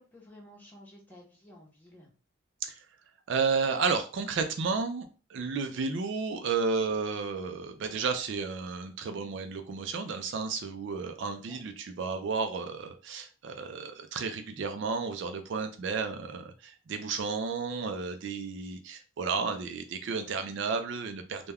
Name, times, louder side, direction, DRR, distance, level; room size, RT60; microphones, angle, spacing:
voice 1, 0.0-2.1 11.4-11.6, left 1 dB, 10° left, -4 dB, 0.7 m, -53 dB
voice 2, 3.3-21.5, right 5 dB, 60° right, 7 dB, 0.3 m, -32 dB
2.2 x 2.1 x 3.4 m, 0.35 s
head